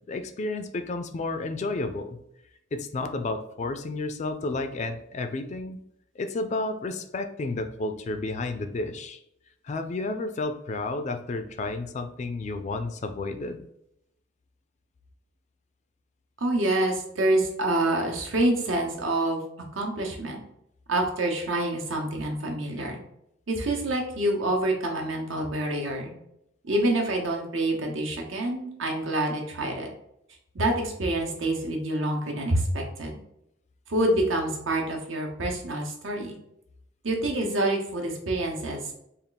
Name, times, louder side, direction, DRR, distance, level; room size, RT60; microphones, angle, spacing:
voice 1, 0.1-2.2 2.7-5.8 6.2-9.2 9.6-13.6, left 2 dB, 35° left, 8 dB, 0.3 m, -31 dB
voice 2, 16.4-19.4 19.7-20.4 20.9-23.0 23.5-26.1 26.6-29.9 30.5-33.2 33.9-36.3 37.0-38.9, right 1 dB, 80° right, 1 dB, 0.9 m, -27 dB
3.5 x 2.4 x 3.8 m, 0.78 s
head